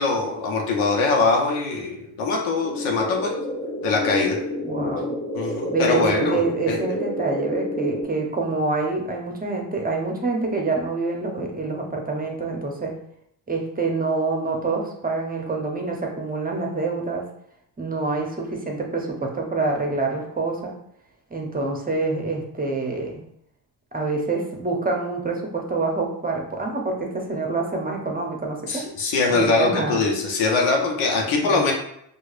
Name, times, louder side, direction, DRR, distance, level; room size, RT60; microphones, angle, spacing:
voice 1, 0.0-3.3 3.8-4.4 5.3-6.4 6.7-6.8 28.7-31.7, left 3 dB, 80° left, 0 dB, 0.9 m, -22 dB
sound 1, 2.6-8.0, left 1 dB, 25° left, 0.8 m, -29 dB
voice 2, 4.6-5.0 5.7-12.9 13.5-17.3 17.8-20.7 21.3-23.2 23.9-28.8 29.3-30.0 31.2-31.7, right 3 dB, 15° right, 1 dB, 0.8 m, -26 dB
4.6 x 2.4 x 2.5 m, 0.75 s
supercardioid pair, 55°, 50 cm